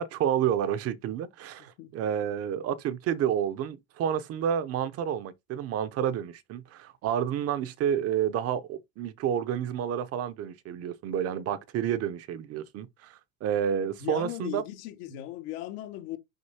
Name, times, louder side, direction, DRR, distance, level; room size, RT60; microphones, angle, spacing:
voice 1, 0.0-14.6, right 9 dB, 35° right, 0.6 m, -30 dB
voice 2, 1.6-1.9 14.0-16.2, left 13 dB, 80° left, 1.7 m, -38 dB
6.4 x 5.3 x 2.8 m
cardioid pair, 160°, 40 cm